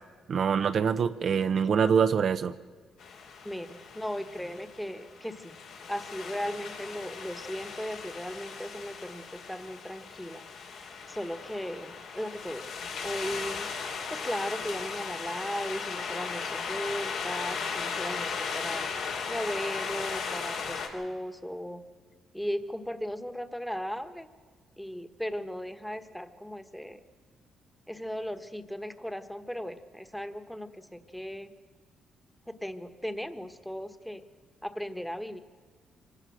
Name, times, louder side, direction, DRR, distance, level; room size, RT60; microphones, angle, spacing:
voice 1, 0.3-2.5, right 7 dB, 55° right, 9 dB, 0.6 m, -25 dB
sound 1, 3.0-20.9, left 5 dB, 80° left, 3.6 m, -37 dB
voice 2, 3.4-5.5 5.9-10.4 11.1-12.7 13.0-13.7 14.1-18.9 19.3-21.8 22.3-24.3 24.8-27.0 27.9-31.5 32.5-34.2 34.6-35.4, equal, 5° left, 10 dB, 1.4 m, -37 dB
24.5 x 17.5 x 6.4 m, 1.6 s
cardioid pair, 90°, 0 cm